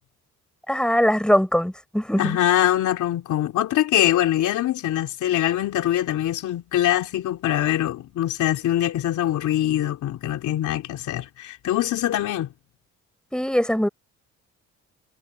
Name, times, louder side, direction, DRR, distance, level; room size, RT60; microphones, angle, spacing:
voice 1, 0.7-2.4 13.3-13.9, equal, 5° left, 4.9 m, -21 dB
voice 2, 2.2-12.5, left 12 dB, 80° left, 3.2 m, -23 dB
cardioid pair, 90°, 30 cm